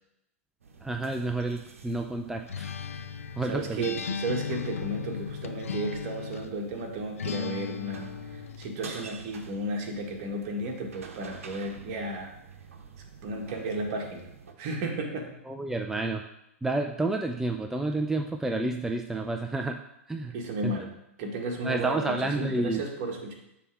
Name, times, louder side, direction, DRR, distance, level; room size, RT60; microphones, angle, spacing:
sound 1, 0.6-14.5, right 5 dB, 75° right, 1.0 m, -48 dB
voice 1, 0.8-2.7 3.4-3.8 15.5-16.2 16.6-19.8 20.1-20.3 20.6-20.7 21.6-22.8, right 2 dB, 5° right, 4 dB, 0.5 m, -30 dB
Acoustic guitar, 2.5-6.6 7.2-8.8, left 6 dB, 80° left, 0.4 m, -36 dB
voice 2, 3.4-12.3 13.2-14.3 14.6-15.3 20.3-23.3, right 1 dB, 45° right, 2 dB, 1.7 m, -34 dB
6.9 x 3.5 x 6.1 m, 0.82 s
hypercardioid pair, 105°, 7 cm